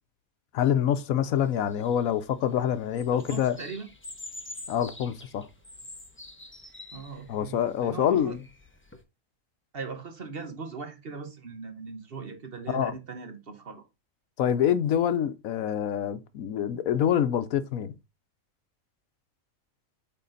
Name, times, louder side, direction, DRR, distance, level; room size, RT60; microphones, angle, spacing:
voice 1, 0.5-3.6 4.7-5.5 7.3-8.4 12.7-12.9 14.4-17.9, left 9 dB, 75° left, 1.1 m, -26 dB
sound 1, 1.3-9.0, left 2 dB, 10° left, 0.7 m, -47 dB
voice 2, 3.1-3.9 6.9-8.4 9.7-13.8, right 5 dB, 45° right, 1.3 m, -39 dB
8.4 x 4.1 x 3.9 m
omnidirectional pair, 1.5 m